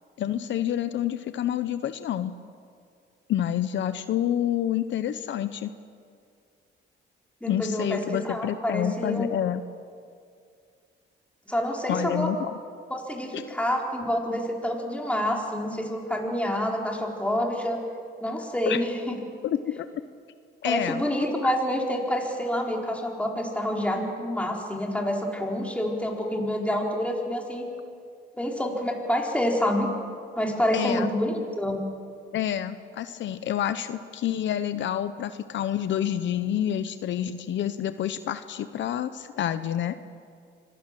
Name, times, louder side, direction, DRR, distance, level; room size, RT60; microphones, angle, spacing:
voice 1, 0.2-2.3 3.3-5.7 7.5-9.6 11.9-12.5 13.3-13.4 18.7-18.8 19.4-19.9 20.6-21.0 21.4-21.5 30.7-31.1 32.3-40.0, left 10 dB, 70° left, 11 dB, 0.8 m, -28 dB
voice 2, 7.4-9.3 11.5-12.3 12.9-17.8 18.2-19.2 20.6-27.6 28.4-29.9 30.4-31.8, equal, 5° left, 0 dB, 4.4 m, -27 dB
25.0 x 18.0 x 7.6 m, 2.3 s
cardioid pair, 90°, 20 cm